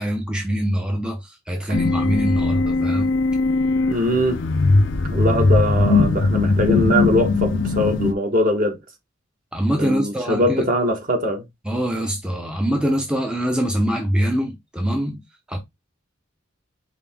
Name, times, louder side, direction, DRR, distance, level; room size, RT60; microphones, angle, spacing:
voice 1, 0.0-3.1 9.5-10.7 11.6-15.2 15.5-15.6, equal, 5° right, 0.6 m, -23 dB
sound 1, 1.7-8.1, left 3 dB, 65° left, 0.6 m, -19 dB
voice 2, 3.9-4.4 5.0-8.8 9.8-11.4, equal, 45° right, 1.2 m, -21 dB
5.1 x 2.8 x 3.4 m
head